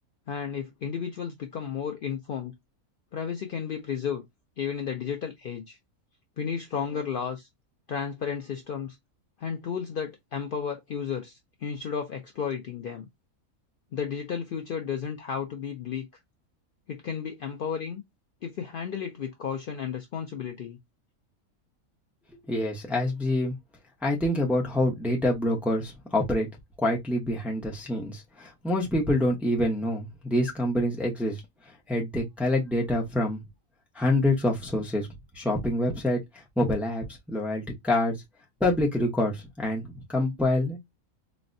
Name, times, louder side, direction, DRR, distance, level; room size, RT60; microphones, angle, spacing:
voice 1, 0.3-2.5 3.1-4.2 4.6-5.8 6.4-7.5 7.9-9.0 9.4-13.1 13.9-16.1 16.9-18.0 18.4-20.8, left 7 dB, 90° left, 0.4 m, -33 dB
voice 2, 22.5-23.5 24.0-26.5 26.8-31.4 31.9-33.4 34.0-35.1 35.3-36.2 36.6-38.2 38.6-40.8, left 1 dB, ahead, 0.4 m, -26 dB
4.1 x 2.1 x 2.5 m
omnidirectional pair, 1.5 m